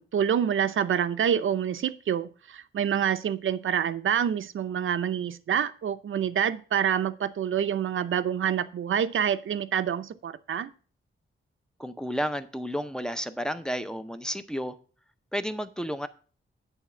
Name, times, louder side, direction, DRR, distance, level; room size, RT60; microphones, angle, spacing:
voice 1, 0.0-10.7, right 8 dB, 70° right, 12 dB, 0.6 m, -27 dB
voice 2, 11.8-14.7 15.3-16.1, equal, 5° left, 10 dB, 0.5 m, -32 dB
10.0 x 4.1 x 7.0 m, 0.40 s
wide cardioid pair, 175°, 21 cm